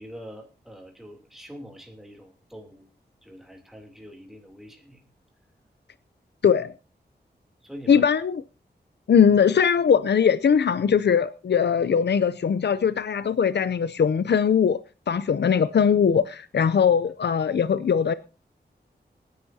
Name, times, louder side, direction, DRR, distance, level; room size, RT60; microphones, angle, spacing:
voice 1, 0.0-2.9 3.2-5.1 7.6-8.0 16.6-16.7, equal, ahead, 3.0 m, -44 dB
voice 2, 6.4-6.7 7.9-8.4 9.1-14.8 15.1-18.1, left 7 dB, 75° left, 0.6 m, -20 dB
26.0 x 10.5 x 2.8 m
wide cardioid pair, 100°, 18 cm